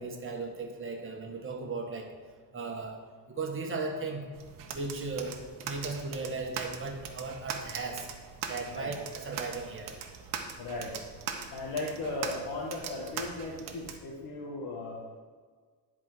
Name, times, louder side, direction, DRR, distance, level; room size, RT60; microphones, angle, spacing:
voice 1, 0.0-2.1 2.5-3.0 3.3-4.2 4.7-5.4 5.6-8.1 8.5-9.9, right 3 dB, 30° right, 2 dB, 1.5 m, -36 dB
sound 1, 4.3-14.0, right 7 dB, 55° right, 1.1 m, -41 dB
voice 2, 10.6-10.9 11.5-15.0, left 2 dB, 60° left, -4 dB, 1.8 m, -36 dB
10.5 x 4.8 x 6.1 m, 1.6 s
cardioid pair, 125°, 40 cm